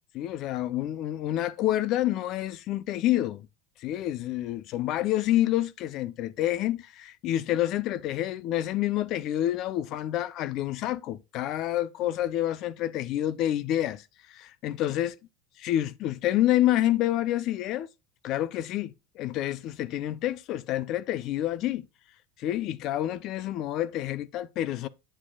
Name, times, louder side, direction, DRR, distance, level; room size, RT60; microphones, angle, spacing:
voice 1, 0.1-3.5 3.8-15.1 15.6-17.9 18.2-21.9 22.4-24.9, left 13 dB, 45° left, 0.5 m, -28 dB
8.8 x 7.5 x 2.2 m
cardioid pair, 160°, 0 cm